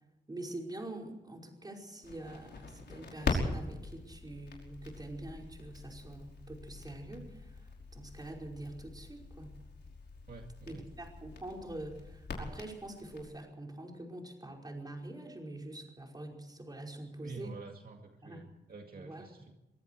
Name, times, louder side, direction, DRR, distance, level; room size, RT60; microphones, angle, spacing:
voice 1, 0.3-9.6 10.7-17.5 18.2-18.4 18.9-19.3, right 1 dB, 20° right, 1 dB, 5.2 m, -45 dB
Crackle, 2.0-13.2, left 3 dB, 85° left, 5.4 m, -42 dB
voice 2, 10.3-10.8 17.2-19.5, right 4 dB, 55° right, 3 dB, 2.1 m, -48 dB
24.0 x 23.5 x 4.7 m, 0.96 s
wide cardioid pair, 155°, 18 cm